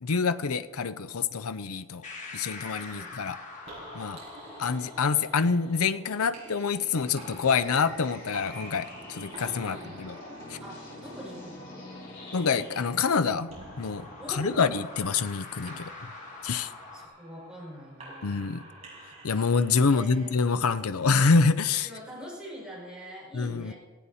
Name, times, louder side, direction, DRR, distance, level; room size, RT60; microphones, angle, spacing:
voice 1, 0.0-2.0 2.3-3.4 3.9-4.2 4.6-10.2 10.5-10.6 12.3-15.9 16.4-16.7 18.2-18.6 19.2-21.9 23.3-23.7, left 5 dB, 85° left, 13 dB, 0.6 m, -26 dB
sound 1, 2.0-17.0, left 3 dB, 35° left, 2.1 m, -47 dB
sound 2, 3.6-21.3, right 1 dB, 30° right, 6.6 m, -49 dB
sound 3, 7.0-12.8, left 1 dB, 55° left, 6.5 m, -45 dB
voice 2, 9.6-10.0 10.6-11.8 14.2-14.8 16.9-18.6 19.8-20.5 21.8-23.7, equal, 5° right, -5 dB, 5.4 m, -43 dB
18.0 x 15.5 x 4.2 m, 1.3 s
head